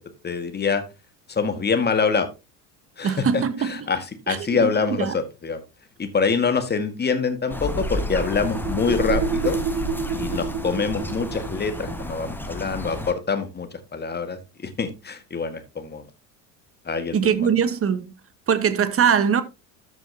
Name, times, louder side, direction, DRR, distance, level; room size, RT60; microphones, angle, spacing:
voice 1, 0.2-0.8 1.3-2.3 3.0-5.6 6.0-9.6 10.2-16.0 16.8-17.5, left 5 dB, 20° left, 1.7 m, -25 dB
voice 2, 3.0-3.9 4.3-4.7 5.0-5.2 17.1-18.1 18.5-19.4, right 7 dB, 30° right, 1.3 m, -22 dB
sound 1, 7.2-12.1, right 5 dB, 50° right, 1.7 m, -29 dB
sound 2, 7.5-13.1, left 1 dB, 5° left, 1.4 m, -32 dB
13.0 x 6.3 x 2.8 m
hypercardioid pair, 70°, 48 cm